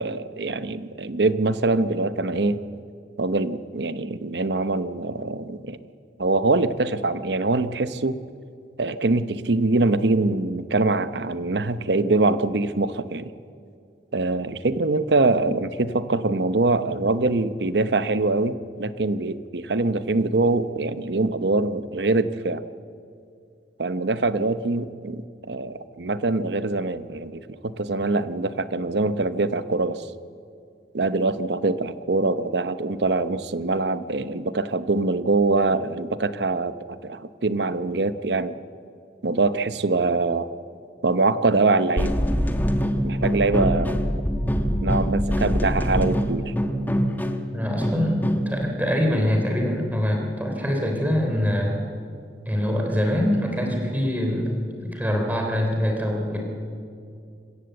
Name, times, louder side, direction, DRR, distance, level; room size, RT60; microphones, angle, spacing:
voice 1, 0.0-2.7 3.2-5.8 6.2-8.2 8.8-13.3 14.1-22.6 23.8-30.1 30.9-38.5 39.2-40.5 41.0-42.1 43.0-44.0 44.8-46.5, right 3 dB, 70° right, 13 dB, 0.8 m, -23 dB
sound 1, 42.0-48.6, equal, 10° left, 1.1 m, -24 dB
voice 2, 47.5-48.2 48.4-51.8 52.4-54.5 54.8-56.4, equal, 10° right, 1 dB, 3.3 m, -24 dB
25.5 x 14.5 x 8.1 m, 2.4 s
head